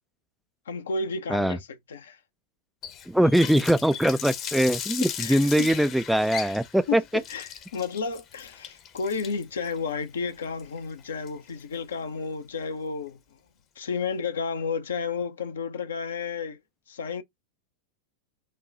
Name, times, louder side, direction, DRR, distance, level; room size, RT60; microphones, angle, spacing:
voice 1, 0.7-2.2 5.2-5.7 6.9-13.4 13.8-16.6 16.9-17.2, left 5 dB, 65° left, 0.7 m, -32 dB
Water tap faucet, 2.8-11.7, left 8 dB, 35° left, 0.8 m, -37 dB
voice 2, 3.1-7.0, equal, ahead, 0.3 m, -22 dB
5.2 x 2.3 x 3.8 m
figure-of-eight pair, 90°, 0 cm